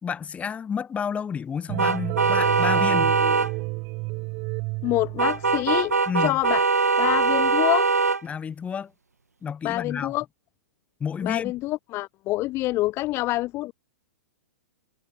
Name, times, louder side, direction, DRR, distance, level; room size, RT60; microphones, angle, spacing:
voice 1, 0.0-3.2 6.1-6.4 8.2-8.9 9.4-10.2 11.0-11.5, left 7 dB, 15° left, 1.9 m, -30 dB
sound 1, 1.7-5.8, right 28 dB, 40° right, 2.9 m, -30 dB
sound 2, 1.8-3.5 5.2-8.2, right 4 dB, 90° right, 0.4 m, -22 dB
voice 2, 4.8-6.6 7.0-7.9 9.6-10.2 11.2-13.7, left 18 dB, 30° left, 1.0 m, -26 dB
figure-of-eight pair, 110°, 8 cm